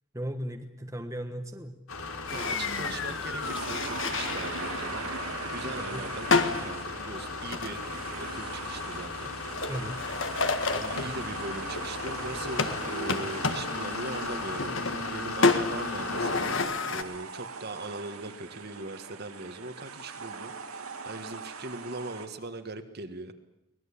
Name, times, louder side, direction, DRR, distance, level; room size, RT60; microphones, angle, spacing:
voice 1, 0.1-1.8 5.8-6.0 9.7-10.0, equal, 15° right, 5 dB, 1.2 m, -36 dB
sound 1, 1.9-16.6, left 3 dB, 90° left, 3.4 m, -37 dB
sound 2, 2.3-17.0, left 4 dB, 60° left, 1.7 m, -32 dB
voice 2, 2.3-7.8 8.2-9.3 10.6-20.5 21.0-23.3, right 2 dB, 50° right, 8 dB, 1.6 m, -40 dB
sound 3, 3.4-22.3, right 4 dB, 85° right, 2.3 m, -40 dB
24.0 x 19.0 x 8.6 m, 0.90 s
head